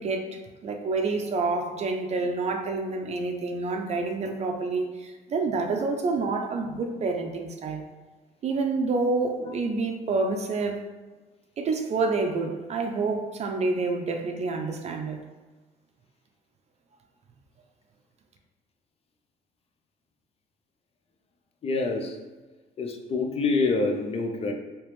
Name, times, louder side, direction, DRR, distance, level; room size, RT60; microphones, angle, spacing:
voice 1, 0.0-7.8 8.4-10.8 11.6-15.2, right 3 dB, 40° right, 4 dB, 0.5 m, -28 dB
voice 2, 21.6-22.2 22.8-24.5, left 3 dB, 35° left, 3 dB, 0.5 m, -26 dB
3.3 x 2.9 x 3.1 m, 1.3 s
cardioid pair, 110°, 17 cm